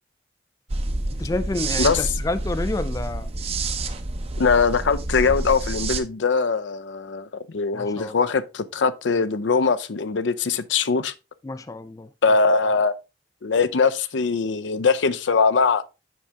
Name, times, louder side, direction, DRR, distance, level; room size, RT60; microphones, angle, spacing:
sound 1, 0.7-6.0, right 2 dB, 35° right, 0.6 m, -28 dB
voice 1, 1.2-3.3 7.7-8.2 11.4-12.1, left 2 dB, 20° left, 0.3 m, -29 dB
voice 2, 4.4-11.1 12.2-12.9 13.4-15.8, left 4 dB, 75° left, 0.5 m, -21 dB
7.5 x 5.6 x 3.4 m
head